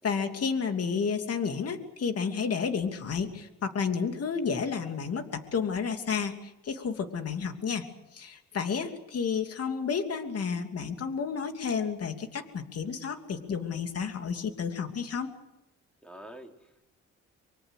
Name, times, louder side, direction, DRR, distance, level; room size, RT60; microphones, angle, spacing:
voice 1, 0.0-7.8 8.1-15.4, left 6 dB, 55° left, 6 dB, 2.9 m, -31 dB
voice 2, 8.5-8.9 16.0-16.8, right 1 dB, 5° left, 3 dB, 3.9 m, -49 dB
24.5 x 23.5 x 6.7 m, 0.88 s
cardioid pair, 90°, 30 cm